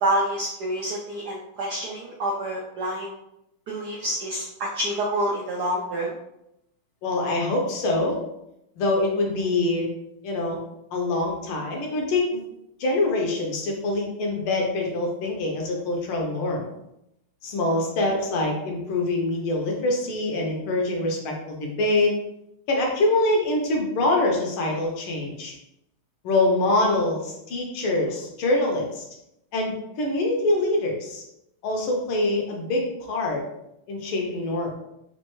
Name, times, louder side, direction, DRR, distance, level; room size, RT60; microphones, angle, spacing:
voice 1, 0.0-3.1 3.7-6.1, right 1 dB, 75° right, -3 dB, 0.9 m, -27 dB
voice 2, 7.0-8.2 8.8-9.9 10.2-10.6 10.9-12.4 12.8-16.7 17.4-22.1 22.7-25.5 26.2-29.0 29.5-31.2 31.6-33.4 33.9-34.8, left 2 dB, 75° left, 0 dB, 1.7 m, -24 dB
4.3 x 2.5 x 3.0 m, 0.82 s
omnidirectional pair, 2.4 m